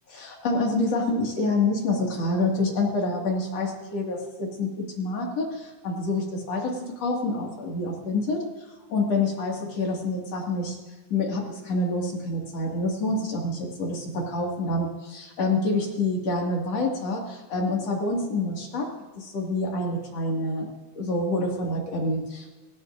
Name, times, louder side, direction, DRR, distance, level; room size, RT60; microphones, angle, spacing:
voice 1, 0.1-8.5 8.9-10.8 11.1-20.7 20.9-22.6, left 2 dB, 45° left, -1 dB, 2.8 m, -27 dB
25.0 x 14.0 x 2.6 m, 1.2 s
omnidirectional pair, 4.7 m